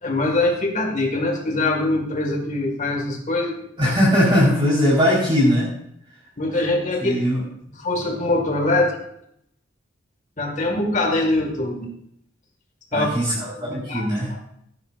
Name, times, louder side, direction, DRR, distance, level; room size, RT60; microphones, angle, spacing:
voice 1, 0.0-3.9 6.4-7.1 7.8-9.0 10.4-11.9 12.9-13.1 13.6-14.0, left 2 dB, 40° left, 2 dB, 2.0 m, -23 dB
voice 2, 3.8-5.7 7.0-7.4 12.9-14.3, equal, 25° right, -7 dB, 4.3 m, -19 dB
17.0 x 10.5 x 2.6 m, 0.71 s
head